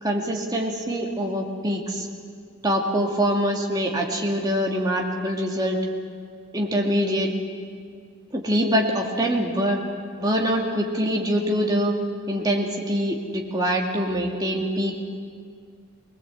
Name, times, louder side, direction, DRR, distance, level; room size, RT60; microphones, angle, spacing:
voice 1, 0.0-2.1 2.6-5.8 6.5-7.3 8.3-9.8 10.2-11.9 12.3-15.0, equal, 20° right, 0 dB, 2.3 m, -24 dB
20.5 x 20.5 x 8.1 m, 2.2 s
head